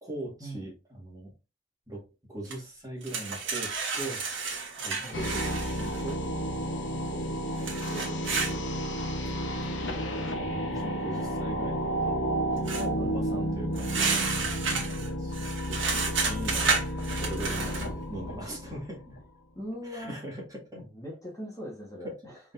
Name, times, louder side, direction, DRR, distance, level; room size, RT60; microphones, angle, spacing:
voice 1, 0.0-1.3 1.9-4.2 4.8-6.2 6.9-8.7 10.1-12.1 12.6-19.2 19.8-20.9 22.0-22.1, right 1 dB, 20° right, -2 dB, 1.8 m, -41 dB
sound 1, 2.5-2.6 3.0-6.1 7.6-8.5 12.7-12.8 13.8-17.9, right 4 dB, 85° right, 1.3 m, -31 dB
sound 2, 5.1-19.2, equal, 75° left, 1.0 m, -32 dB
voice 2, 12.7-13.1 14.6-14.8 16.5-16.9 19.5-20.2 20.8-22.4, equal, 20° left, -2 dB, 1.3 m, -41 dB
5.1 x 3.6 x 2.5 m, 0.29 s
head